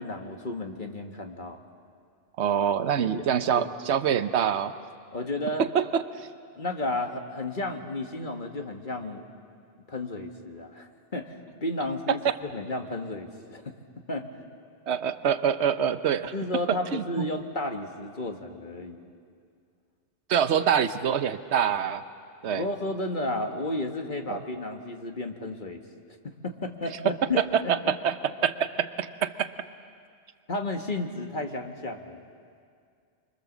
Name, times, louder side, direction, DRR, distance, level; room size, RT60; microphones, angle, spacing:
voice 1, 0.0-1.6 3.1-3.3 3.5-3.7 5.1-5.7 6.6-9.3 9.9-13.7 14.1-14.3 16.3-19.1 22.5-25.8 26.2-27.9 30.5-32.2, left 2 dB, 45° left, 4 dB, 1.7 m, -33 dB
voice 2, 2.4-4.7 5.7-6.3 12.1-12.4 14.9-16.3 16.7-17.3 20.3-22.0 22.4-22.6 24.3-24.4 27.0-29.5, right 8 dB, 75° right, 12 dB, 1.1 m, -25 dB
29.5 x 24.5 x 7.3 m, 2.2 s
omnidirectional pair, 1.1 m